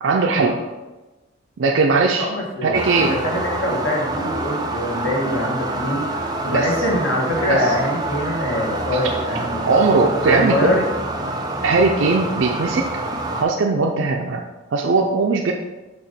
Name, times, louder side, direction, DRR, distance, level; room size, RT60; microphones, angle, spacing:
voice 1, 0.0-0.6 1.6-2.3 2.6-3.2 6.5-6.7 7.5-7.6 9.7-10.8 11.6-12.9 13.3-14.4 14.7-15.5, right 4 dB, 65° right, 2 dB, 0.5 m, -19 dB
voice 2, 2.2-6.0 6.4-9.7 10.2-10.8, left 1 dB, 75° left, -1 dB, 1.5 m, -24 dB
sound 1, 2.7-13.4, right 2 dB, 20° right, 0.5 m, -26 dB
7.0 x 2.9 x 5.3 m, 1.1 s
head